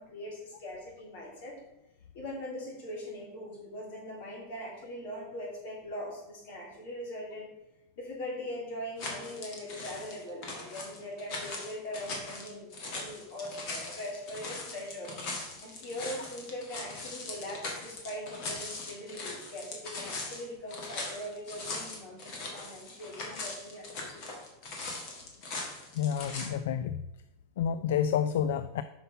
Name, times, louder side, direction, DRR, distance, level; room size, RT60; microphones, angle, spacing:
voice 1, 0.0-1.6 2.1-7.5 8.0-15.1 15.6-24.3, left 1 dB, 60° left, -2 dB, 3.0 m, -41 dB
sound 1, 9.0-26.5, left 3 dB, 40° left, 1.7 m, -40 dB
voice 2, 25.9-27.0 27.6-28.8, left 8 dB, 80° left, 12 dB, 0.3 m, -29 dB
5.7 x 5.7 x 5.4 m, 0.94 s
supercardioid pair, 175°, 0 cm